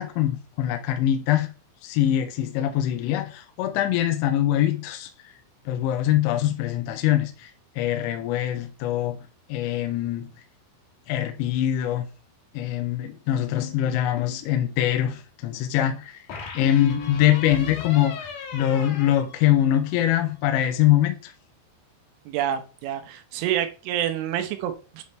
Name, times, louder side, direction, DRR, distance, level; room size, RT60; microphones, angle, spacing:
voice 1, 0.0-1.5 1.8-5.1 5.7-7.5 7.8-9.2 9.5-10.3 11.1-12.1 12.5-16.2 16.6-21.3, left 12 dB, 80° left, 2.9 m, -23 dB
sound 1, 13.6-14.5 16.3-20.1, left 6 dB, 65° left, 2.7 m, -37 dB
voice 2, 22.3-25.0, right 10 dB, 85° right, 3.2 m, -28 dB
9.3 x 4.3 x 3.1 m
omnidirectional pair, 5.5 m